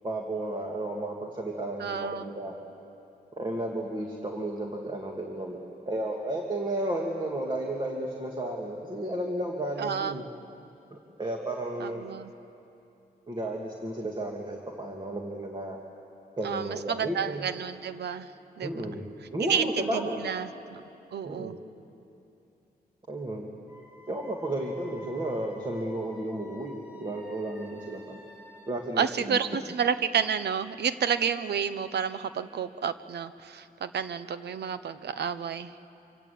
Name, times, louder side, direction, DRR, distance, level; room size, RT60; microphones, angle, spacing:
voice 1, 0.0-2.6 3.4-10.2 10.9-12.1 13.3-15.8 16.4-17.5 18.6-19.0 19.3-20.2 21.2-21.6 23.1-23.5 24.1-28.2 28.7-29.4, right 1 dB, 30° right, 0 dB, 2.4 m, -33 dB
voice 2, 1.8-2.3 9.8-10.2 11.8-12.3 16.4-18.3 18.6-18.8 19.4-20.8 21.1-21.6 29.0-35.7, right 7 dB, 90° right, 12 dB, 0.9 m, -30 dB
Wind instrument woodwind instrument, 23.7-28.7, left 1 dB, 10° right, 7.9 m, -52 dB
26.0 x 25.5 x 8.6 m, 2.8 s
wide cardioid pair, 115°, 17 cm